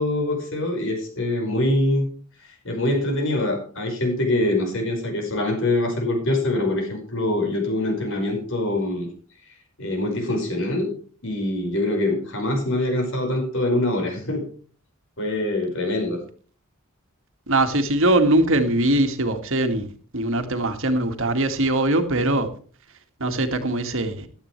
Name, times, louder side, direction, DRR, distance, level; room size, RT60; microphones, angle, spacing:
voice 1, 0.0-2.1 2.4-9.1 9.8-10.9 11.2-14.4 15.2-16.2, left 1 dB, 60° left, 5.4 m, -24 dB
voice 2, 17.5-19.9 20.1-22.5 23.2-24.3, right 1 dB, 60° right, 1.9 m, -21 dB
15.5 x 12.0 x 3.3 m
head